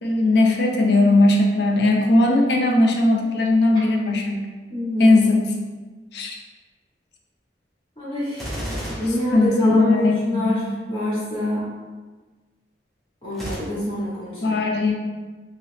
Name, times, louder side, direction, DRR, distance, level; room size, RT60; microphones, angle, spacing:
voice 1, 0.0-4.5 5.0-5.5 6.1-6.3 9.3-10.6 14.4-14.9, left 2 dB, 65° left, 1 dB, 0.5 m, -18 dB
voice 2, 4.7-5.2 8.0-11.7 13.2-14.6, left 1 dB, 30° left, -8 dB, 0.8 m, -26 dB
Gunshot gunfire, 8.3-10.1 13.3-13.6, equal, ahead, 0.6 m, -32 dB
2.9 x 2.8 x 3.1 m, 1.3 s
head